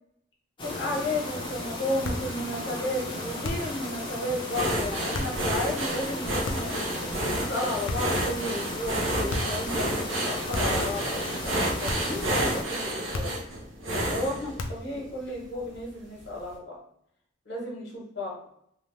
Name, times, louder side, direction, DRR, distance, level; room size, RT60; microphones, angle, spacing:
voice 1, 0.6-6.9 7.3-13.4 14.1-16.8 17.4-18.3, left 1 dB, 60° left, -3 dB, 1.1 m, -33 dB
sound 1, 0.6-12.6, left 1 dB, 25° left, 0.7 m, -35 dB
sound 2, 2.0-2.3 3.4-3.8 5.1-5.4 6.4-6.8 7.9-8.3 9.3-9.6 10.5-10.9 11.9-12.2 13.1-13.5 14.6-14.9, left 2 dB, 85° left, 0.5 m, -33 dB
sound 3, 4.5-15.1 15.6-15.8 16.2-16.3, right 1 dB, 75° right, 0.7 m, -30 dB
2.7 x 2.3 x 3.2 m, 0.71 s
head